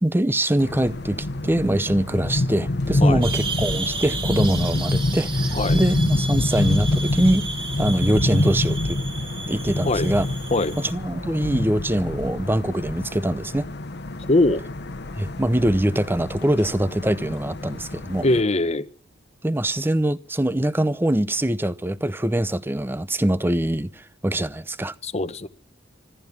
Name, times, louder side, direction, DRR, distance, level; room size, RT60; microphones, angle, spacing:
voice 1, 0.0-7.5 7.8-9.0 9.5-10.3 10.9-13.7 15.2-18.2 19.4-24.9, right 1 dB, 10° right, 0.7 m, -23 dB
sound 1, 0.6-18.4, left 2 dB, 60° left, 1.0 m, -27 dB
sound 2, 3.2-10.9, right 4 dB, 25° right, 2.9 m, -33 dB
voice 2, 14.3-14.6 18.2-18.9 25.0-25.5, left 2 dB, 35° left, 0.9 m, -21 dB
14.5 x 13.5 x 7.2 m
head